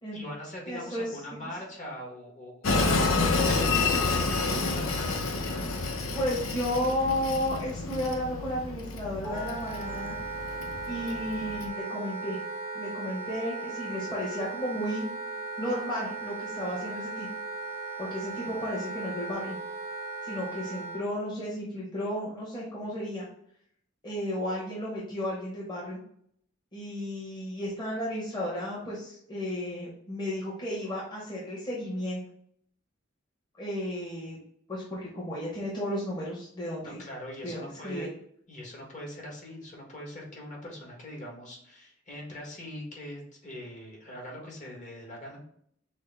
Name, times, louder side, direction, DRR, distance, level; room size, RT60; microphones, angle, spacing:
voice 1, 0.1-3.8 4.3-5.1 36.8-38.1 38.5-45.4, equal, 40° left, -2 dB, 1.5 m, -42 dB
voice 2, 0.7-1.1 6.1-10.2 10.9-12.4 12.7-15.0 15.6-17.3 18.0-19.6 20.2-23.2 24.0-26.0 26.7-32.2 33.6-34.4 34.7-37.0 37.4-38.1, left 1 dB, 25° left, -7 dB, 1.2 m, -33 dB
Train, 2.6-11.7, left 3 dB, 90° left, 0.7 m, -29 dB
Wind instrument woodwind instrument, 9.2-21.0, right 3 dB, 10° right, 0.7 m, -37 dB
6.3 x 2.1 x 3.4 m, 0.67 s
head